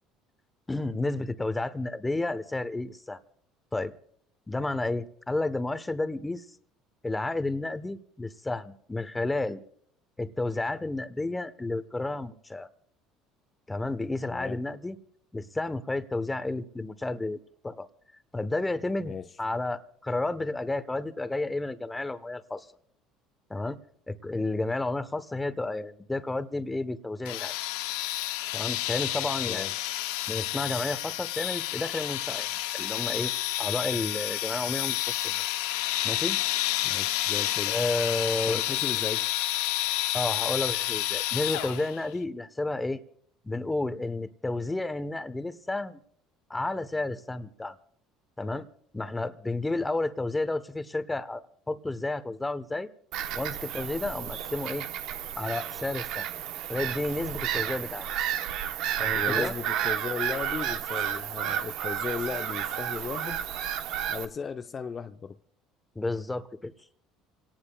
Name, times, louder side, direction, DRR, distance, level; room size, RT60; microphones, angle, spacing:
voice 1, 0.7-3.2 3.7-3.9 4.5-6.4 7.0-9.6 10.2-12.7 13.7-15.0 15.3-17.4 17.6-17.9 18.3-19.1 19.4-22.7 23.5-23.8 24.1-27.5 28.5-29.7 30.3-33.3 33.6-35.5 36.0-36.4 37.7-38.6 40.1-43.0 43.4-46.0 46.5-47.8 48.4-48.7 48.9-52.9 53.3-54.9 55.4-56.3 56.7-58.1 59.0-59.5 65.9-66.7, left 2 dB, 15° left, 1.1 m, -31 dB
voice 2, 14.3-14.6 19.0-19.3 29.5-29.7 36.8-37.8 38.5-39.3 57.5-57.6 59.1-63.4 64.1-65.4, left 6 dB, 35° left, 0.7 m, -36 dB
sound 1, 27.2-42.0, left 16 dB, 85° left, 0.8 m, -30 dB
Bird vocalization bird call bird song / Gull seagull, 53.1-64.2, right 10 dB, 70° right, 1.1 m, -32 dB
27.0 x 18.0 x 2.4 m
supercardioid pair, 90°, 0 cm